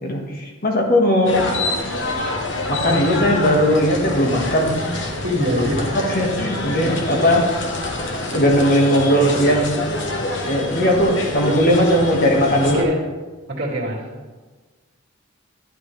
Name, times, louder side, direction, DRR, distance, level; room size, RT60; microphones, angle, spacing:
voice 1, 0.0-1.5 2.7-4.9 5.9-7.5 8.3-9.8 10.4-12.8, equal, 45° left, 0 dB, 1.6 m, -18 dB
sound 1, 1.3-12.8, left 2 dB, 60° left, 1.1 m, -26 dB
voice 2, 5.1-5.9 7.1-7.4 12.6-13.0 13.5-14.2, equal, 55° right, -4 dB, 2.3 m, -24 dB
11.5 x 8.5 x 3.3 m, 1.3 s
head